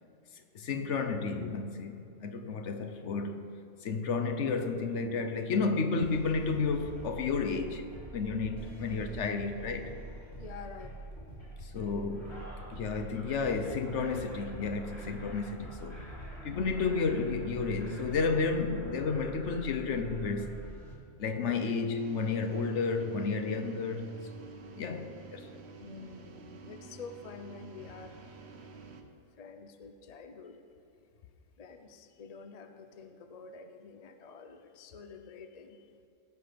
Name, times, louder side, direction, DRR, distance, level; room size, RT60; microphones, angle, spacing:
voice 1, 0.5-3.5 3.8-7.8 8.1-9.9 11.6-12.4 12.7-16.0 16.4-20.6 21.2-24.1 24.8-25.5, left 4 dB, 65° left, 1.0 m, -32 dB
sound 1, 6.0-20.9, right 1 dB, 20° left, 2.2 m, -45 dB
voice 2, 10.4-11.0 25.8-28.2 29.4-30.6 31.6-35.9, left 5 dB, 40° left, 0.6 m, -48 dB
sound 2, 21.9-29.0, right 4 dB, 60° right, 1.1 m, -49 dB
17.5 x 5.9 x 5.1 m
omnidirectional pair, 1.4 m